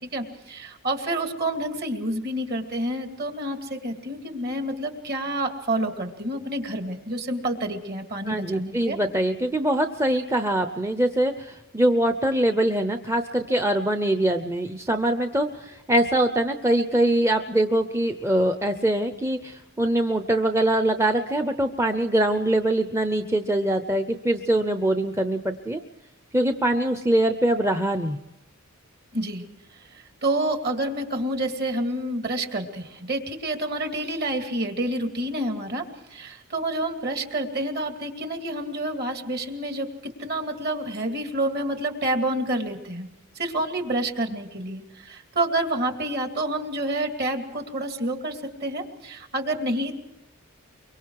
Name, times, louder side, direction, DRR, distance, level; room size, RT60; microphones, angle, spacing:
voice 1, 0.0-9.0 29.1-29.4 29.9-43.1 43.3-50.0, right 1 dB, 50° right, 5 dB, 2.5 m, -28 dB
voice 2, 8.3-25.8 26.3-28.2, right 1 dB, 10° right, 7 dB, 0.7 m, -23 dB
24.0 x 23.5 x 4.8 m, 0.92 s
head